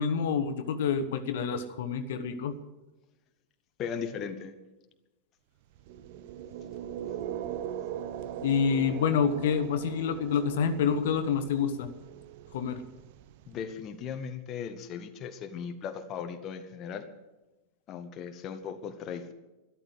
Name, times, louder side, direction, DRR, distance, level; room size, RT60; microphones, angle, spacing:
voice 1, 0.0-2.5 8.4-11.9 12.5-12.8, left 6 dB, 55° left, 9 dB, 1.3 m, -27 dB
voice 2, 3.8-4.5 13.5-17.1 17.9-19.3, left 7 dB, 35° left, 7 dB, 1.3 m, -37 dB
sound 1, 5.8-13.9, right 10 dB, 50° right, 0.8 m, -40 dB
13.0 x 12.0 x 7.8 m, 1.1 s
figure-of-eight pair, 90°, 0 cm